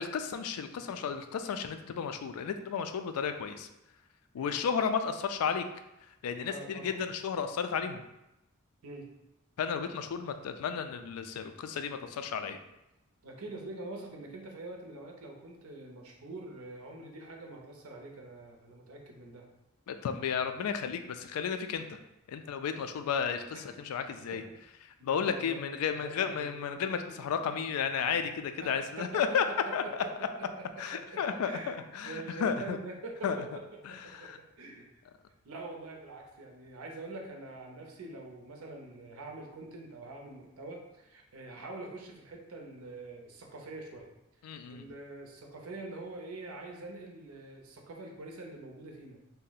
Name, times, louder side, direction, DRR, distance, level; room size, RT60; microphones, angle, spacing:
voice 1, 0.0-3.7 4.3-5.6 6.2-8.0 9.6-12.6 19.9-22.0 22.3-24.4 25.0-29.4 29.7-29.8 30.8-32.8 33.2-33.4 33.9-34.4 44.4-44.9, left 6 dB, 85° left, 8 dB, 0.3 m, -33 dB
voice 2, 6.5-7.0 8.8-9.1 13.2-19.5 23.5-23.6 24.3-24.4 25.0-25.6 25.9-26.7 27.1-27.2 28.6-30.1 30.4-30.5 30.7-31.7 32.0-34.9 35.4-44.1 44.7-49.2, right 2 dB, 80° right, 1 dB, 0.6 m, -45 dB
2.7 x 2.1 x 3.9 m, 0.91 s
head